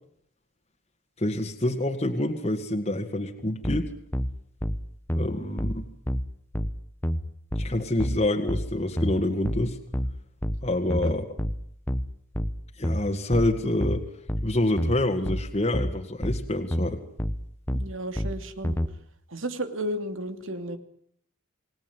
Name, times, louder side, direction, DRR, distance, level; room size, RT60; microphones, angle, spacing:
voice 1, 1.2-3.9 5.2-5.8 7.6-9.8 10.6-11.3 12.8-14.1 14.4-17.0, left 1 dB, 30° left, 3 dB, 2.1 m, -27 dB
sound 1, 3.6-18.9, equal, 10° left, 1.2 m, -29 dB
voice 2, 17.7-18.8 19.3-20.8, right 1 dB, 85° right, 9 dB, 2.7 m, -33 dB
28.5 x 19.0 x 9.7 m, 0.67 s
head